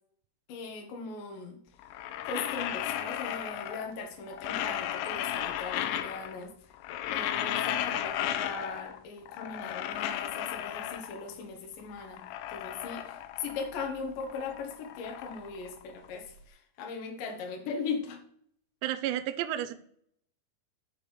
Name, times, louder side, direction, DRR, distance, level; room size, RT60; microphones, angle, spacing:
voice 1, 0.5-1.6 2.2-6.7 7.1-12.2 12.5-18.2, left 4 dB, 65° left, 3 dB, 2.3 m, -39 dB
sound 1, 1.8-4.0 4.3-6.5 6.7-9.0 9.3-11.3 11.8-13.8 14.1-16.3, left 11 dB, 90° left, 3.0 m, -35 dB
voice 2, 18.8-19.7, right 12 dB, 85° right, 11 dB, 2.7 m, -31 dB
6.9 x 5.3 x 6.5 m, 0.64 s
omnidirectional pair, 5.3 m